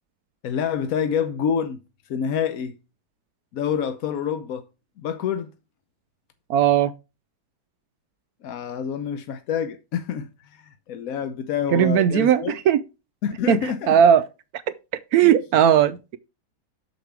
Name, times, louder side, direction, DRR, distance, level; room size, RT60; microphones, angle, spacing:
voice 1, 0.4-1.8 2.1-2.7 3.5-4.6 5.0-5.5 8.4-12.6 13.2-13.9 15.2-15.3, left 7 dB, 65° left, 0.9 m, -27 dB
voice 2, 6.5-6.9 11.7-12.8 13.5-13.6 13.9-14.2 14.7-16.2, right 9 dB, 75° right, 0.8 m, -18 dB
8.0 x 6.6 x 3.4 m
omnidirectional pair, 2.1 m